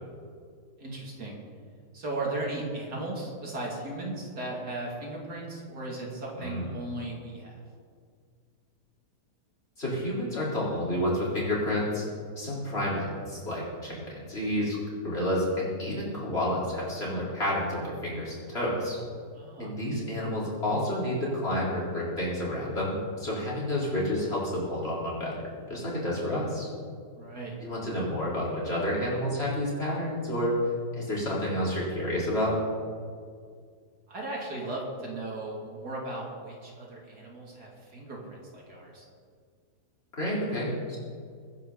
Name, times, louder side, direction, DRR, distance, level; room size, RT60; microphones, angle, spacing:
voice 1, 0.8-1.3 1.9-7.5 19.3-19.7 27.2-27.5 34.1-39.0, right 2 dB, 65° right, -3 dB, 3.3 m, -36 dB
voice 2, 6.4-6.7 9.8-12.0 12.4-14.8 15.0-19.0 19.6-26.7 27.6-30.5 31.0-32.5 40.1-41.0, left 1 dB, 35° left, -5 dB, 4.6 m, -30 dB
23.5 x 10.5 x 4.1 m, 2.1 s
omnidirectional pair, 1.8 m